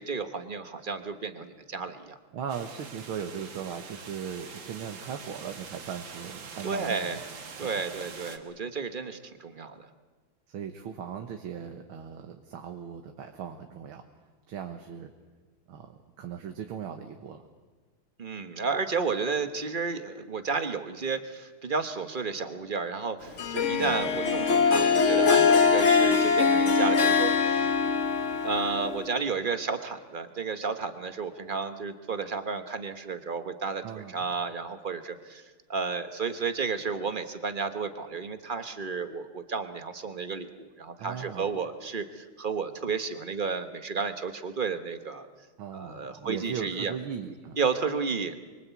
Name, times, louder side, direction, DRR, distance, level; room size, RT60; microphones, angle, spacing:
voice 1, 0.0-2.2 6.6-7.2 7.6-9.9 18.2-27.7 28.4-35.4 35.7-45.3 45.7-46.9 47.6-48.4, right 5 dB, 30° right, 9 dB, 1.1 m, -32 dB
voice 2, 2.3-7.2 10.5-14.0 14.5-15.1 15.7-17.4 23.8-24.2 33.8-34.3 41.0-41.5 45.6-47.6, right 8 dB, 85° right, 5 dB, 2.0 m, -38 dB
sound 1, 2.5-8.4, right 5 dB, 70° right, 2.4 m, -44 dB
Harp, 23.4-29.2, left 5 dB, 40° left, 1.4 m, -23 dB
25.0 x 24.0 x 8.3 m, 1.4 s
omnidirectional pair, 2.2 m